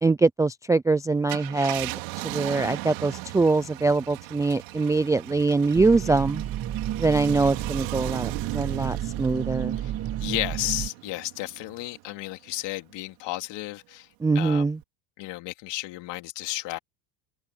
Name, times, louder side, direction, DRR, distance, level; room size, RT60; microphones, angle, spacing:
voice 1, 0.0-1.9 2.2-6.4 7.0-9.8 14.2-14.8, right 3 dB, 5° right, 0.4 m, -23 dB
Car, 1.1-12.0 12.5-12.6 14.6-14.8, right 23 dB, 70° right, 3.9 m, -37 dB
sound 1, 5.7-10.9, right 11 dB, 30° right, 1.0 m, -31 dB
voice 2, 10.2-14.1 14.3-14.6 15.2-16.8, left 18 dB, 60° left, 3.1 m, -33 dB
open air
supercardioid pair, 120°, 49 cm